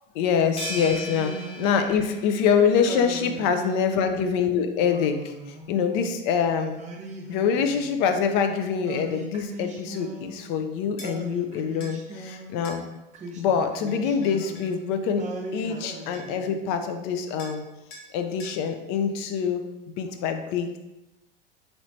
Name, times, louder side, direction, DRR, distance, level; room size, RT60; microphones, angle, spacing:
voice 1, 0.1-5.3 5.7-6.8 7.3-12.8 13.4-15.2 15.5-17.6 18.1-19.7 20.0-20.8, left 6 dB, 50° left, 7 dB, 0.5 m, -25 dB
sound 1, 0.6-3.1, equal, 20° left, 0.9 m, -37 dB
Singing, 0.8-2.2 2.9-4.2 4.8-6.1 6.8-8.3 8.8-10.6 11.0-12.6 13.1-14.8 15.2-16.8, right 2 dB, 25° right, 0.6 m, -39 dB
sound 2, 11.0-11.1 11.8-12.0 12.6-12.8 13.9-14.7 15.8-15.9 16.1-16.5 17.4-17.6 17.9-18.1 18.4-18.6, left 1 dB, 70° left, 1.0 m, -44 dB
3.1 x 3.0 x 2.6 m, 0.99 s
hypercardioid pair, 90°, 30 cm